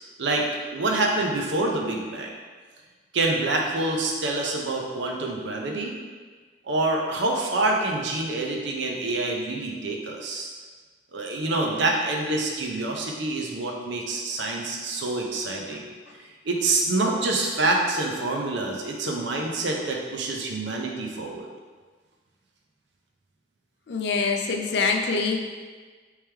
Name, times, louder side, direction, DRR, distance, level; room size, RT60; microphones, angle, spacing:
voice 1, 0.7-2.3 3.1-5.9 6.6-10.5 11.1-15.9 16.4-21.5, right 2 dB, 80° right, 0 dB, 0.6 m, -26 dB
voice 2, 23.9-25.4, left 4 dB, 70° left, 3 dB, 0.4 m, -24 dB
3.3 x 3.1 x 3.3 m, 1.4 s
head